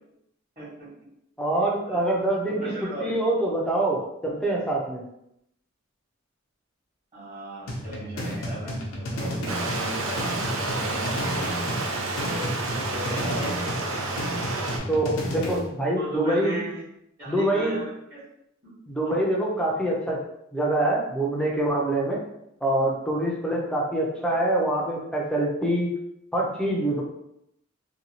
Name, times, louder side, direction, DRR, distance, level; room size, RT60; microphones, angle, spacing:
voice 1, 0.6-0.9 1.9-2.0 2.5-3.2 7.1-11.2 12.1-12.5 12.8-13.6 16.0-16.8 17.2-18.2 18.6-18.7 19.0-19.2 24.1-24.3, right 1 dB, 30° right, -13 dB, 1.2 m, -36 dB
voice 2, 1.4-2.6 3.0-5.0 14.9-16.6 17.3-17.8 18.9-20.2 20.5-22.2 22.6-25.9 26.3-27.0, right 1 dB, 5° left, -3 dB, 0.5 m, -25 dB
sound 1, 7.7-15.7, equal, 85° left, 0.6 m, -32 dB
Stream, 9.5-14.8, right 2 dB, 85° right, 0.5 m, -30 dB
2.7 x 2.3 x 2.8 m, 0.80 s
head